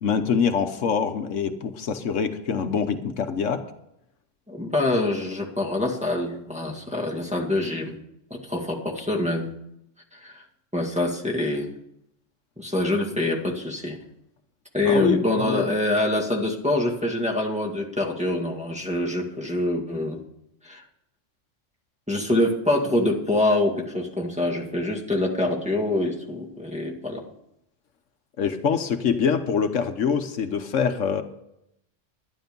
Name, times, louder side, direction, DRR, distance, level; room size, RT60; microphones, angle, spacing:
voice 1, 0.0-3.6 14.8-15.6 28.4-31.2, left 6 dB, 80° left, 8 dB, 1.3 m, -24 dB
voice 2, 4.5-8.0 8.3-9.5 10.1-10.4 10.7-11.7 12.6-14.0 14.7-20.2 20.6-20.8 22.1-27.2, left 1 dB, 5° right, -2 dB, 2.0 m, -25 dB
12.0 x 10.5 x 5.3 m, 0.80 s
omnidirectional pair, 1.3 m